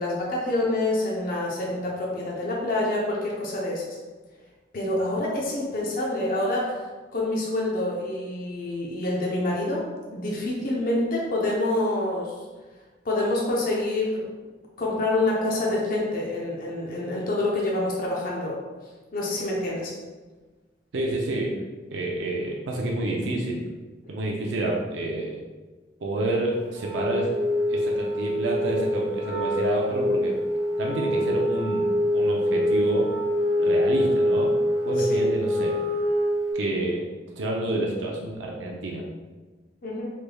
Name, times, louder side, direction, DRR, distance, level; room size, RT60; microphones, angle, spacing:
voice 1, 0.0-3.8 4.7-6.9 7.1-9.9 10.1-12.3 13.0-14.3 14.8-18.6 19.1-19.9 35.0-35.2 39.8-40.1, left 2 dB, 50° left, -3 dB, 0.6 m, -27 dB
voice 2, 20.9-21.6 21.9-23.6 24.1-25.4 26.0-27.3 27.7-30.4 30.8-33.1 33.6-34.5 34.8-35.7 36.5-37.0 37.4-39.0, right 2 dB, 80° right, -1 dB, 0.5 m, -28 dB
Wind instrument woodwind instrument, 26.8-36.5, equal, ahead, 1.4 m, -25 dB
3.3 x 3.2 x 2.2 m, 1.3 s
head